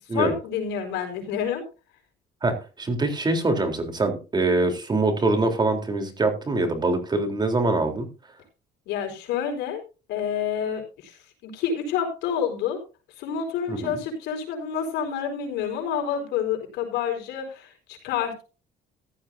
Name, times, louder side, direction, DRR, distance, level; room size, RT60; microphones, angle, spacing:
voice 1, 0.1-1.6 8.9-9.8 10.1-11.2 11.4-12.8 13.2-18.4, left 8 dB, 85° left, 4 dB, 4.8 m, -28 dB
voice 2, 2.4-8.1 13.7-14.0, right 2 dB, 25° right, 5 dB, 3.8 m, -24 dB
15.5 x 12.0 x 2.7 m, 0.32 s
cardioid pair, 110°, 17 cm